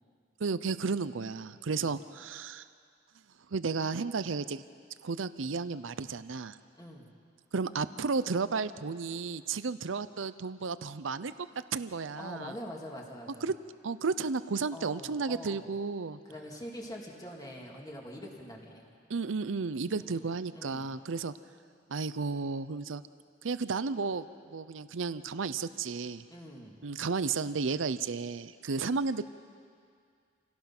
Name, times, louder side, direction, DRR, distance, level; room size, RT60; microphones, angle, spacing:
voice 1, 0.4-2.6 3.5-4.6 5.0-6.6 7.5-11.3 11.7-12.5 13.4-13.5 13.8-16.2 19.1-21.3 21.9-23.0 23.4-26.2 26.8-29.2, right 4 dB, 85° right, 14 dB, 0.6 m, -33 dB
voice 2, 6.8-7.1 12.2-13.5 14.7-15.7 16.2-18.8 20.0-20.2 20.5-20.9 26.3-26.8, equal, 20° left, -1 dB, 2.5 m, -44 dB
27.5 x 17.0 x 6.0 m, 2.2 s
head